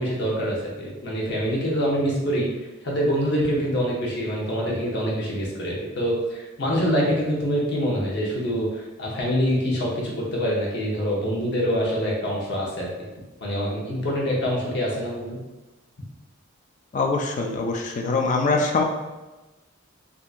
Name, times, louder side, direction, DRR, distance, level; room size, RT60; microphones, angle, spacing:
voice 1, 0.0-2.5 2.8-12.9 13.4-15.4, equal, 55° left, -4 dB, 0.9 m, -25 dB
voice 2, 16.9-18.8, left 3 dB, 35° left, 2 dB, 0.3 m, -23 dB
3.6 x 2.7 x 2.5 m, 1.1 s
head